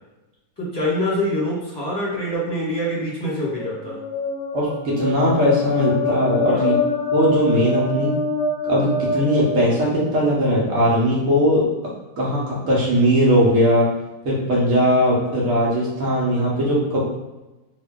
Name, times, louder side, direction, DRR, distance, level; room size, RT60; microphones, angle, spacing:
voice 1, 0.6-4.0 6.5-6.8, equal, 15° left, -7 dB, 1.2 m, -25 dB
sound 1, 3.5-10.3, left 3 dB, 70° left, 1.0 m, -25 dB
voice 2, 4.5-6.7 7.1-8.1 8.6-11.6 12.2-13.9 14.2-17.0, equal, 55° right, -5 dB, 1.4 m, -19 dB
3.1 x 2.7 x 3.7 m, 1.1 s
omnidirectional pair, 1.8 m